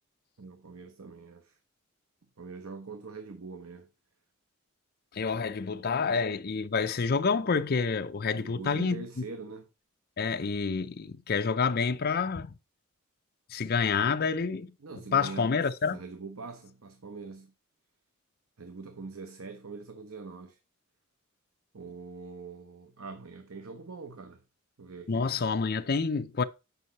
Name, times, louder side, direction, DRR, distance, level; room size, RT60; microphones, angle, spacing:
voice 1, 0.4-1.6 2.4-3.9 5.7-5.9 8.3-9.7 14.8-15.6 15.9-17.5 18.6-20.6 21.7-24.4 24.8-25.3, right 4 dB, 80° right, 0.8 m, -43 dB
voice 2, 5.1-9.1 10.2-12.6 13.5-14.7 15.1-16.0 25.1-26.4, left 5 dB, 45° left, 0.5 m, -28 dB
8.0 x 5.3 x 4.1 m
head